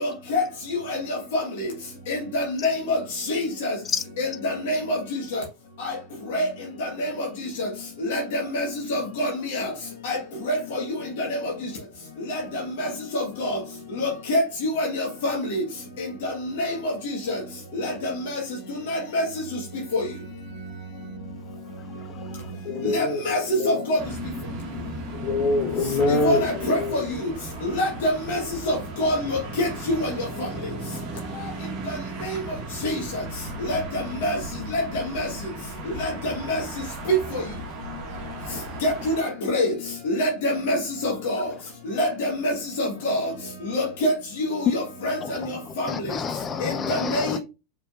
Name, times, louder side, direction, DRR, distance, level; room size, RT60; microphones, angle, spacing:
voice 1, 0.0-0.4 0.9-1.0 1.3-1.4 2.1-3.0 3.3-3.7 4.2-5.0 5.3-5.4 6.3-6.5 7.0-7.1 7.6-7.7 8.1-9.6 10.0-10.2 10.5-10.6 12.8-12.9 13.1-13.6 14.0-14.4 14.8-15.6 16.6-16.7 18.9-19.2 19.9-20.0 22.9-23.4 23.6-24.0 26.2-27.0 27.8-28.4 28.7-29.7 30.0-30.1 32.8-33.0 33.7-33.8 34.2-34.4 35.1-35.3 36.0-36.6 38.8-39.7 40.1-40.8 41.0-41.5 42.0-42.5 42.8-43.2 43.7-44.1 44.7-45.1 45.8-45.9 46.6-47.4, left 1 dB, 60° left, 1.3 m, -25 dB
voice 2, 22.6-24.0 25.1-27.1, left 2 dB, 45° left, 2.1 m, -25 dB
sound 1, 24.0-39.2, right 2 dB, 45° right, 1.2 m, -36 dB
voice 3, 45.7-47.4, left 6 dB, 30° left, 0.5 m, -29 dB
4.4 x 3.7 x 2.4 m
figure-of-eight pair, 85°, 0 cm